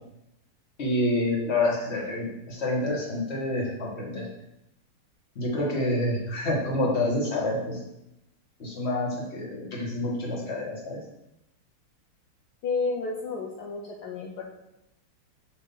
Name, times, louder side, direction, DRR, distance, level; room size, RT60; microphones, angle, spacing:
voice 1, 0.8-4.3 5.3-7.8 8.6-11.0, left 1 dB, 35° left, -3 dB, 1.5 m, -28 dB
voice 2, 12.6-14.5, left 4 dB, 70° left, -2 dB, 1.0 m, -31 dB
7.1 x 2.8 x 5.3 m, 0.87 s
omnidirectional pair, 2.4 m